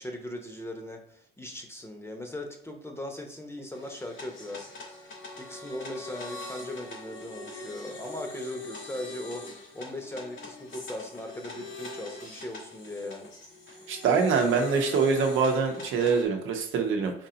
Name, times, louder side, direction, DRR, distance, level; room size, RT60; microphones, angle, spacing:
voice 1, 0.0-4.6 5.4-9.4 9.7-13.3, left 1 dB, 10° left, 3 dB, 0.9 m, -39 dB
sound 1, 3.7-16.2, left 2 dB, 90° left, 1.8 m, -43 dB
voice 2, 13.9-17.1, right 5 dB, 85° right, 3 dB, 0.8 m, -24 dB
4.5 x 2.8 x 3.8 m, 0.71 s
cardioid pair, 90°, 20 cm